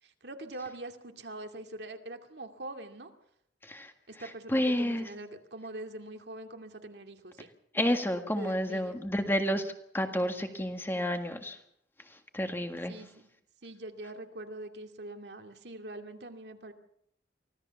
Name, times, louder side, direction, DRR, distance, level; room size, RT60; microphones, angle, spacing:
voice 1, 0.0-3.1 4.1-7.5 8.4-9.0 12.9-13.1 13.6-16.7, right 2 dB, 70° right, 5 dB, 2.4 m, -43 dB
voice 2, 3.6-5.1 7.7-11.6 12.0-12.9, equal, 15° left, 6 dB, 1.7 m, -31 dB
25.0 x 17.0 x 7.0 m, 0.74 s
head